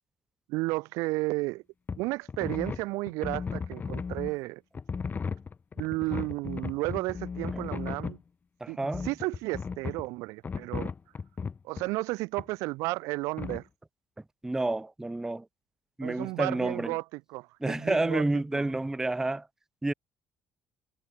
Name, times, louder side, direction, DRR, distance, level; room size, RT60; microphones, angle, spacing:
voice 1, 0.5-1.6 2.0-4.6 5.8-8.2 8.7-8.8 9.0-10.9 11.6-13.7 16.0-17.0 17.3-18.2 18.5-18.7, right 23 dB, 65° right, 0.6 m, -32 dB
sound 1, 1.9-2.0 2.3-4.4 4.8-8.2 8.9-10.1 10.4-11.9 12.4-12.5 13.4-13.6, left 5 dB, 30° left, 1.0 m, -35 dB
voice 2, 8.6-9.1 14.4-15.5 16.0-17.0 17.6-19.5 19.8-19.9, right 2 dB, 10° right, 0.4 m, -29 dB
hypercardioid pair, 50°, 6 cm